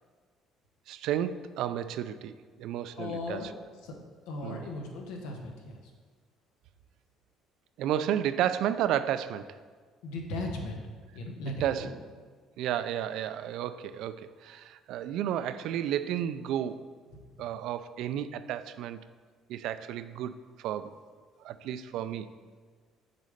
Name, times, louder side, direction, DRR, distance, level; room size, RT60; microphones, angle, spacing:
voice 1, 0.9-3.4 4.4-4.6 7.8-9.5 11.6-11.9 12.6-16.8 17.4-19.0 19.5-20.3 20.6-20.9 21.4-22.3, right 10 dB, 70° right, 12 dB, 0.3 m, -32 dB
voice 2, 3.0-3.5 3.8-3.9 4.3-5.9 10.0-10.8 11.1-11.9, left 2 dB, 85° left, 2 dB, 1.1 m, -37 dB
6.5 x 4.2 x 5.0 m, 1.5 s
cardioid pair, 95°, 0 cm